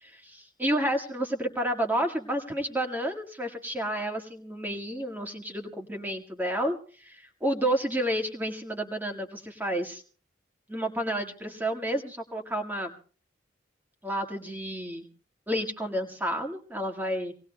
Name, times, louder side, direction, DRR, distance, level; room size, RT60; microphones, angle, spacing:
voice 1, 0.0-10.0 10.7-12.9 14.0-15.1 15.5-17.3, right 1 dB, 10° right, 3 dB, 1.6 m, -30 dB
25.5 x 19.0 x 2.2 m, 0.42 s
head